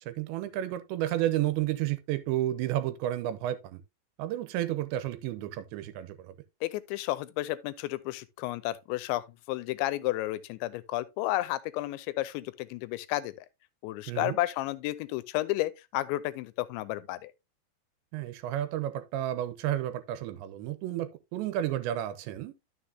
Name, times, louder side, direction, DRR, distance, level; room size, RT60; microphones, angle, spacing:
voice 1, 0.0-3.8 4.2-6.4 14.1-14.4 18.1-22.5, right 13 dB, 85° right, 3.0 m, -31 dB
voice 2, 6.6-13.3 13.8-17.3, left 16 dB, 90° left, 3.0 m, -32 dB
11.5 x 6.6 x 2.7 m
omnidirectional pair, 5.2 m